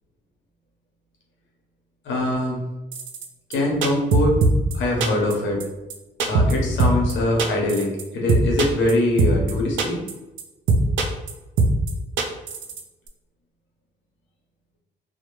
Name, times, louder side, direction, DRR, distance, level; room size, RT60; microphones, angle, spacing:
voice 1, 2.0-2.6 3.5-4.4 4.7-5.6 6.2-10.0 10.8-10.9, left 1 dB, 70° left, -1 dB, 0.8 m, -23 dB
sound 1, 2.9-3.3 3.5-3.6 3.8-4.8 5.0-5.3 5.6-5.7 5.9-6.0 6.2-6.5 6.8-7.1 7.4-8.0 8.3-8.9 9.2-9.5 9.8-10.1 10.4-10.5 10.7-11.3 11.6-11.9 12.2-12.8 13.1-13.2, right 3 dB, 70° right, 0.4 m, -20 dB
2.1 x 2.1 x 3.0 m, 1.0 s
cardioid pair, 90°, 20 cm